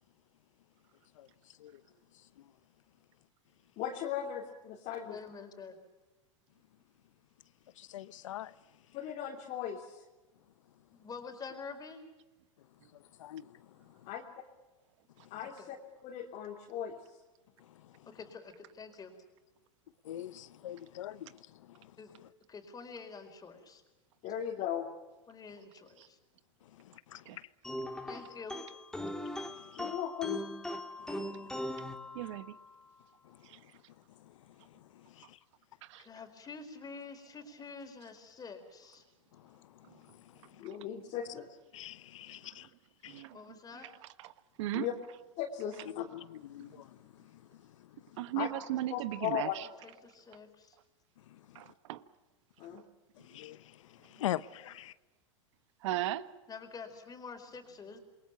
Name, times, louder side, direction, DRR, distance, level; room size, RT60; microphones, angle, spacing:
voice 1, 3.8-5.2 8.9-10.0 14.1-14.2 15.3-15.8 16.0-17.0 24.2-24.9 29.8-30.4 40.6-41.5 44.7-44.9 45.4-46.0 48.3-48.5 48.9-49.5 52.6-52.8, left 10 dB, 45° left, 3.2 m, -37 dB
voice 2, 5.0-5.8 10.9-12.0 15.4-15.5 18.0-19.2 22.0-22.1 22.5-23.8 25.3-26.2 28.1-28.6 36.0-39.0 43.3-43.9 49.8-50.8 56.5-58.0, left 5 dB, 20° left, 4.8 m, -47 dB
voice 3, 7.8-8.5 13.2-14.0 17.6-17.9 20.0-21.9 26.7-27.4 29.4-29.8 31.0-31.9 33.2-33.6 34.2-34.3 34.6-35.4 39.3-40.6 41.7-42.7 43.0-43.2 46.0-48.0 51.3-51.7 52.7-52.8 53.2-54.9, left 12 dB, 75° left, 0.9 m, -45 dB
sound 1, 27.6-32.7, left 1 dB, 5° left, 2.5 m, -40 dB
voice 4, 32.1-32.6 33.4-33.6 35.8-36.1 39.9-40.0 40.6-40.8 42.4-42.6 43.1-43.5 43.8-43.9 44.2-44.3 44.6-44.9 46.6-46.8 48.2-49.7 51.5-52.0 52.7-52.8 55.8-56.3, right 15 dB, 65° right, 1.4 m, -37 dB
28.0 x 22.5 x 6.0 m
hypercardioid pair, 110°, 17 cm